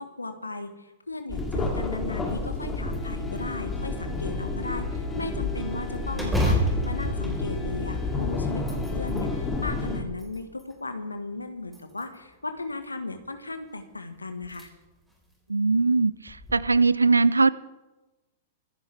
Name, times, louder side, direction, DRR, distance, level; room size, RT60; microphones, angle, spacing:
voice 1, 0.0-14.7, left 3 dB, 85° left, 8 dB, 1.5 m, -36 dB
sound 1, 1.3-10.0, left 3 dB, 15° left, 2.9 m, -30 dB
sound 2, 1.3-1.8 2.3-2.4 2.9-3.7 6.1-8.1 8.5-9.3 9.9-10.8 11.7-12.3 13.8-13.9 14.4-14.7 15.1-15.2 16.3-16.5, equal, 5° right, 4.6 m, -30 dB
voice 2, 15.5-17.5, right 3 dB, 80° right, 20 dB, 0.5 m, -21 dB
25.0 x 10.5 x 3.5 m, 1.1 s
figure-of-eight pair, 100°, 0 cm